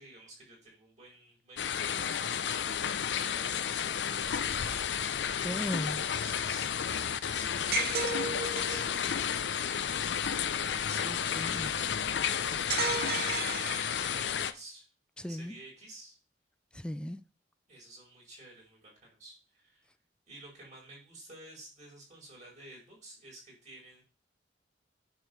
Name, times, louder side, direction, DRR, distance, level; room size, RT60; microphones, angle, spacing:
voice 1, 0.0-2.8 3.1-4.9 6.1-7.9 8.7-9.8 10.4-14.9 15.2-16.2 17.7-19.9 20.3-24.0, right 2 dB, 45° right, 5.3 m, -52 dB
sound 1, 1.6-14.5, left 8 dB, 85° left, 0.6 m, -32 dB
voice 2, 5.4-6.1 11.0-11.7 15.2-15.5 16.7-17.2, equal, 5° left, 0.3 m, -37 dB
sound 2, 7.7-8.9 12.7-14.3, right 5 dB, 60° right, 0.8 m, -34 dB
9.0 x 3.8 x 6.7 m
head